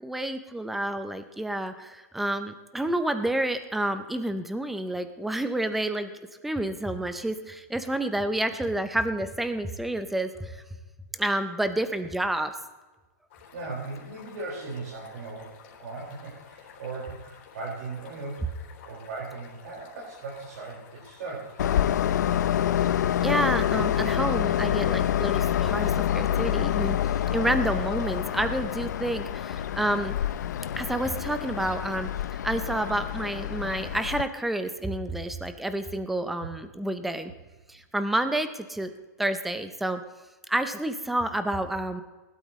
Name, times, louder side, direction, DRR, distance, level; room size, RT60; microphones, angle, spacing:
voice 1, 0.0-6.1 6.4-10.6 11.2-12.5 23.2-30.1 30.8-37.3 37.7-38.9 39.2-40.0 40.5-42.0, right 1 dB, ahead, 10 dB, 0.5 m, -29 dB
sound 1, 13.3-32.0, left 7 dB, 35° left, 3.8 m, -52 dB
voice 2, 13.5-18.4 18.8-21.8, right 3 dB, 55° right, -5 dB, 4.7 m, -38 dB
Train, 21.6-34.2, left 10 dB, 65° left, 0.5 m, -27 dB
20.5 x 12.5 x 3.1 m, 1.2 s
hypercardioid pair, 175°, 10 cm